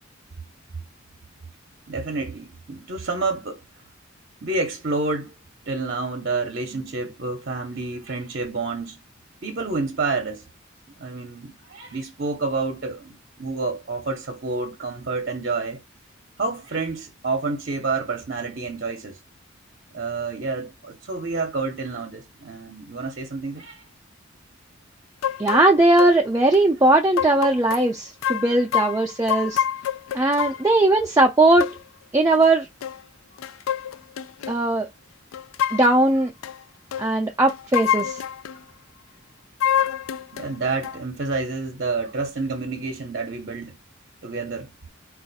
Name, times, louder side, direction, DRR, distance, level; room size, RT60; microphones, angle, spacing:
voice 1, 1.9-3.6 4.4-5.3 5.7-9.0 9.4-10.4 11.0-15.8 16.4-19.2 19.9-23.8 35.6-35.7 40.3-43.8 44.2-44.7, right 3 dB, 50° right, 0.7 m, -29 dB
sound 1, 25.2-25.7 26.0-26.1 26.5-26.6 27.2-27.8 28.2-30.7 31.6-31.8 32.3-32.5 32.8-33.0 33.4-34.6 35.3-36.0 36.4-36.6 36.9-37.1 37.5-38.6 39.6-40.5 40.8-41.0, left 9 dB, 85° left, 0.4 m, -26 dB
voice 2, 25.4-29.6 30.1-31.8 32.1-32.7 34.5-34.9 35.7-36.3 37.0-38.2, right 2 dB, 15° right, 0.4 m, -19 dB
4.3 x 2.4 x 4.0 m
head